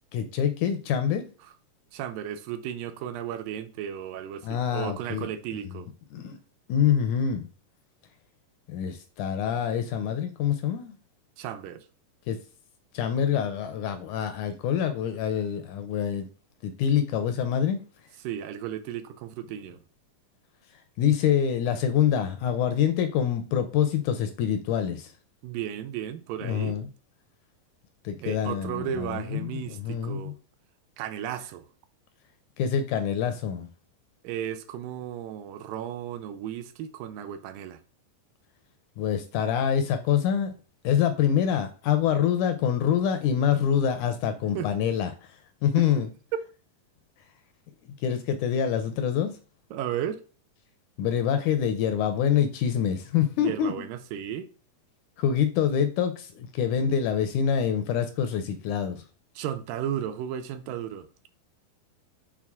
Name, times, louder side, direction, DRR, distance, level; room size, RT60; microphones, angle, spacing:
voice 1, 0.1-1.3 4.4-5.3 6.1-6.4 6.7-7.5 8.7-10.9 12.3-12.4 12.9-16.3 16.6-17.8 21.0-25.1 26.4-26.9 28.0-30.3 32.6-33.7 39.0-40.5 40.8-45.4 45.6-46.1 48.0-49.3 51.0-53.7 55.2-59.0, left 8 dB, 80° left, 1.9 m, -26 dB
voice 2, 1.9-5.9 11.4-11.9 18.2-19.8 25.4-26.8 28.2-30.3 31.0-31.7 34.2-37.8 44.5-44.7 45.8-45.9 49.7-50.2 53.4-54.5 59.4-61.1, right 10 dB, 85° right, 2.3 m, -34 dB
6.1 x 4.5 x 3.5 m
omnidirectional pair, 3.9 m